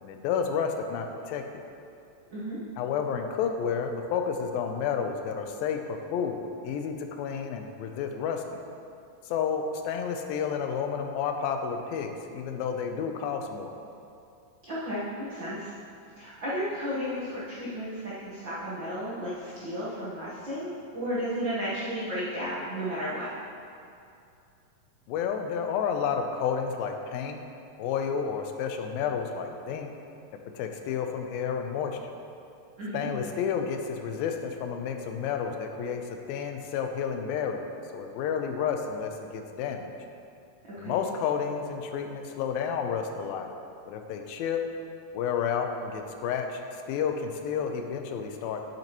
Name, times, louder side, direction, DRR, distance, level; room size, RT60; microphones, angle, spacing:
voice 1, 0.0-1.6 2.8-8.6 9.3-13.8 25.1-27.4 27.8-29.9 30.5-32.0 32.9-39.9 40.8-43.5 43.9-44.6 45.1-48.6, left 7 dB, 90° left, 5 dB, 2.4 m, -31 dB
voice 2, 14.7-15.7 16.2-23.3 32.8-33.1 40.6-41.0, equal, 75° right, -9 dB, 1.0 m, -33 dB
9.0 x 8.0 x 3.0 m, 2.5 s
omnidirectional pair, 4.1 m